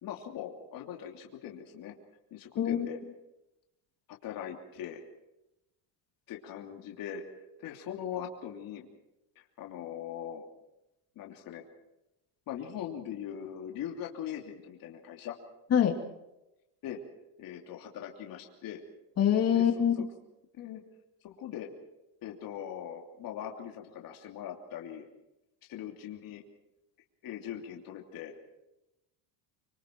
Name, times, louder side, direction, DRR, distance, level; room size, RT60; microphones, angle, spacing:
voice 1, 0.0-1.9 2.3-3.0 4.2-5.0 6.3-7.2 7.6-8.9 9.4-10.5 11.1-11.6 12.5-15.4 16.8-17.0 17.4-18.8 19.5-20.1 20.5-20.8 21.2-21.7 22.2-25.1 25.7-26.4 27.2-28.3, left 9 dB, 50° left, 1 dB, 3.0 m, -41 dB
voice 2, 19.2-19.9, left 9 dB, 35° left, 3 dB, 2.8 m, -24 dB
25.5 x 25.0 x 4.6 m, 0.92 s
cardioid pair, 145°, 45 cm